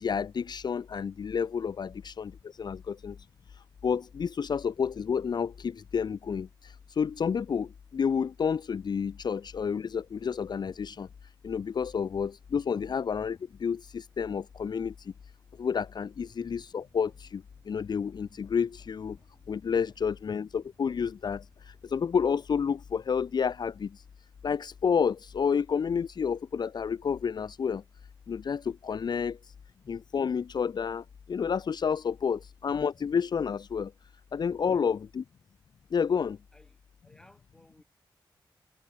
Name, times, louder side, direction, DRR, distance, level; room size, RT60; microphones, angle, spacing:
voice 1, 0.0-2.3 2.6-3.1 3.8-6.5 7.0-7.7 7.9-11.1 11.4-14.9 15.6-17.4 17.7-19.2 19.5-21.4 21.9-23.9 24.4-27.8 28.3-29.4 29.9-31.0 31.3-33.9 34.3-35.2 35.9-36.4, left 6 dB, 60° left, 0.6 m, -30 dB
sound 1, 15.8-24.7 25.2-25.3, right 3 dB, 35° right, 6.9 m, -69 dB
voice 2, 36.5-37.8, left 1 dB, 10° left, 6.2 m, -60 dB
wide cardioid pair, 90°, 8 cm